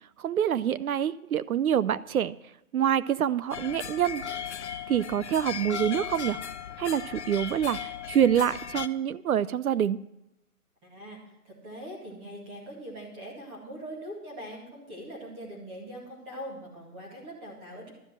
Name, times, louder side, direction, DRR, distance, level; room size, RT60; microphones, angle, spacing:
voice 1, 0.2-2.4 2.7-4.2 4.9-6.4 6.8-10.0, right 9 dB, 70° right, 18 dB, 0.6 m, -26 dB
sound 1, 3.5-8.9, left 8 dB, 50° left, 0.6 m, -37 dB
voice 2, 10.8-11.2 11.4-17.9, equal, 10° right, -3 dB, 2.1 m, -42 dB
12.5 x 7.4 x 7.5 m, 0.87 s
hypercardioid pair, 170°, 45 cm